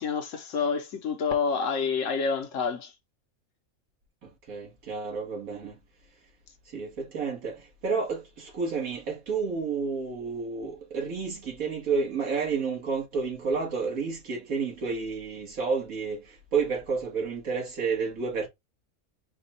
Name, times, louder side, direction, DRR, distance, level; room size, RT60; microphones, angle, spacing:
voice 1, 0.0-2.9, left 5 dB, 65° left, 1.1 m, -28 dB
voice 2, 4.2-5.8 6.7-18.5, right 5 dB, 75° right, 1.9 m, -30 dB
4.9 x 2.3 x 4.1 m
omnidirectional pair, 1.5 m